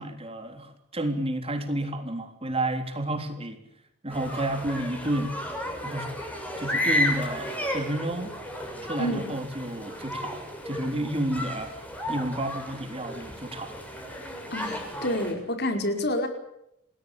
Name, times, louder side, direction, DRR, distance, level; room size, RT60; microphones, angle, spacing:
voice 1, 0.0-3.6 4.0-5.4 5.8-6.1 6.6-8.4 8.8-11.8 12.1-13.8, right 1 dB, 25° right, 6 dB, 3.5 m, -31 dB
sound 1, 4.1-15.3, left 1 dB, 5° left, 7.4 m, -33 dB
voice 2, 14.5-16.3, left 1 dB, 45° left, 5 dB, 5.1 m, -28 dB
30.0 x 20.0 x 8.8 m, 0.80 s
head